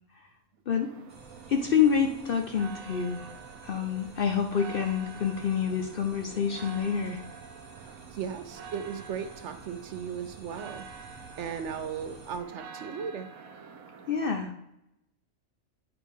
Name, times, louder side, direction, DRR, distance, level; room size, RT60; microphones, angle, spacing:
sound 1, 0.7-14.2, right 6 dB, 85° right, 1.2 m, -47 dB
sound 2, 1.1-12.4, right 2 dB, 10° right, 1.3 m, -52 dB
voice 1, 1.5-3.3 3.6-7.2 14.1-14.5, left 7 dB, 55° left, 4 dB, 0.6 m, -27 dB
voice 2, 8.1-10.9 11.4-13.3, right 7 dB, 65° right, 9 dB, 0.8 m, -36 dB
9.6 x 4.9 x 3.6 m, 0.86 s
omnidirectional pair, 1.4 m